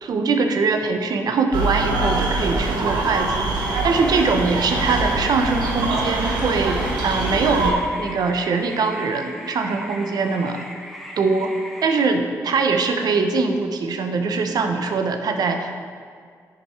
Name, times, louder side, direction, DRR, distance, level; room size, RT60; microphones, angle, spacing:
voice 1, 0.0-3.5 3.8-10.6 11.2-11.5 11.8-15.7, right 4 dB, 65° right, 5 dB, 0.9 m, -22 dB
sound 1, 1.5-7.7, right 2 dB, 80° right, 1.1 m, -24 dB
sound 2, 3.6-12.1, equal, ahead, 1.1 m, -39 dB
9.9 x 5.2 x 4.8 m, 2.1 s
supercardioid pair, 55°, 7 cm